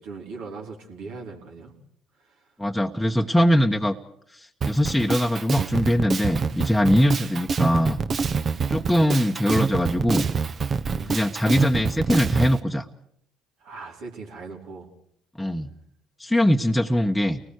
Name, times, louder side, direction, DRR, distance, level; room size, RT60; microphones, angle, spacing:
voice 1, 0.0-1.7 2.2-2.5 10.8-11.6 13.6-14.9, right 4 dB, 70° right, -1 dB, 4.7 m, -40 dB
voice 2, 2.6-3.9 4.7-8.0 8.7-10.3 11.1-12.8 15.4-15.7 16.2-17.4, equal, 5° left, 2 dB, 1.3 m, -21 dB
Drum kit, 4.6-12.5, right 5 dB, 40° right, 1.3 m, -26 dB
30.0 x 19.5 x 4.9 m, 0.67 s
hypercardioid pair, 60°, 0 cm